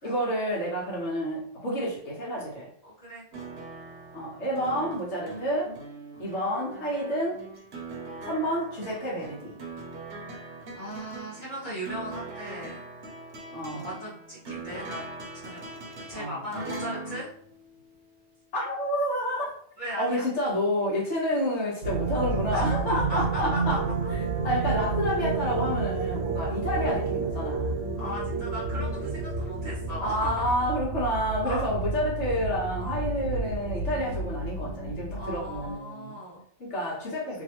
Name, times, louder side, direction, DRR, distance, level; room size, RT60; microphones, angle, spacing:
voice 1, 0.0-2.7 4.1-5.7 6.2-7.4 8.2-9.6 13.5-13.9 16.1-16.5 18.5-19.6 20.0-27.8 28.9-29.1 30.0-36.2 36.6-37.4, equal, 70° left, -5 dB, 1.5 m, -29 dB
voice 2, 2.8-3.2 6.1-6.4 10.7-12.8 13.7-15.0 15.3-17.3 19.8-20.2 22.5-23.8 26.5-26.6 28.0-30.4 31.4-31.6 32.7-33.0 35.1-36.4, left 1 dB, 35° left, -9 dB, 1.3 m, -37 dB
sound 1, 3.3-18.2 19.5-19.6, right 2 dB, 60° right, 1.0 m, -41 dB
sound 2, 21.8-35.7, right 3 dB, 85° right, 1.1 m, -30 dB
3.0 x 2.6 x 2.9 m, 0.64 s
omnidirectional pair, 1.2 m